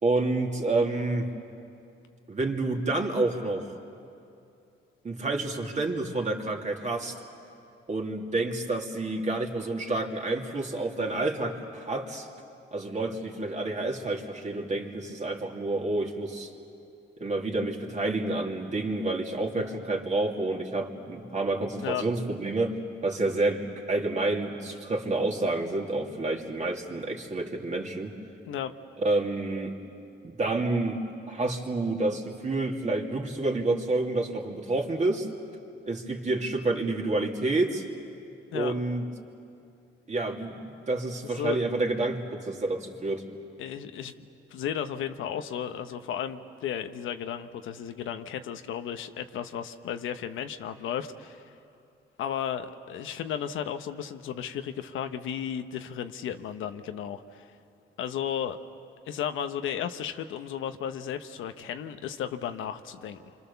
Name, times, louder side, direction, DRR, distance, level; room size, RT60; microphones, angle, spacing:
voice 1, 0.0-1.3 2.3-3.7 5.0-7.2 7.9-12.3 12.7-16.5 17.2-22.8 23.0-28.1 29.0-29.7 30.2-35.3 35.9-37.8 38.5-39.0 40.1-40.6 40.9-43.2, right 2 dB, 35° right, 1 dB, 2.8 m, -29 dB
voice 2, 41.2-41.6 43.6-51.5 52.2-57.5 58.0-58.6 59.1-63.3, left 9 dB, 80° left, 8 dB, 1.1 m, -34 dB
27.5 x 25.5 x 7.0 m, 2.7 s
cardioid pair, 90°, 20 cm